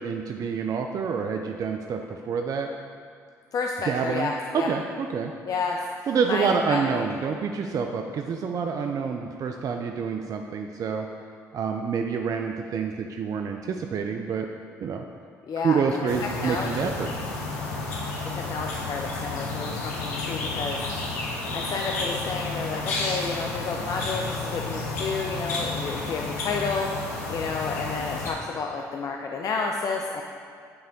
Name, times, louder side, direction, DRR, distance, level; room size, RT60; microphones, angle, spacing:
voice 1, 0.0-2.7 3.9-5.3 6.1-11.1 11.5-14.5 14.8-15.0 15.6-17.1, right 6 dB, 45° right, 4 dB, 0.4 m, -27 dB
voice 2, 3.5-4.7 5.4-5.8 6.3-7.0 15.5-16.9 18.3-20.8 21.5-30.2, left 4 dB, 50° left, 1 dB, 0.4 m, -31 dB
sound 1, 16.1-28.3, left 3 dB, 85° left, 0.7 m, -31 dB
7.8 x 3.4 x 3.7 m, 2.2 s
hypercardioid pair, 55°, 8 cm